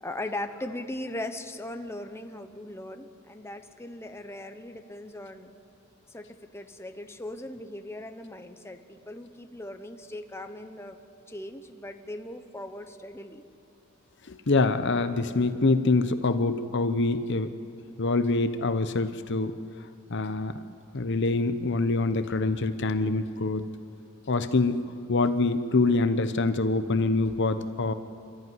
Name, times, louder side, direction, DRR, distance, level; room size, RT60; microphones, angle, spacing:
voice 1, 0.0-5.5 6.1-11.0 11.3-13.4, left 1 dB, 15° left, 6 dB, 1.0 m, -39 dB
voice 2, 14.3-17.5 18.0-19.5 20.1-20.6 20.9-23.6 24.3-27.9, left 3 dB, 60° left, 10 dB, 0.9 m, -25 dB
28.5 x 13.5 x 9.5 m, 2.7 s
head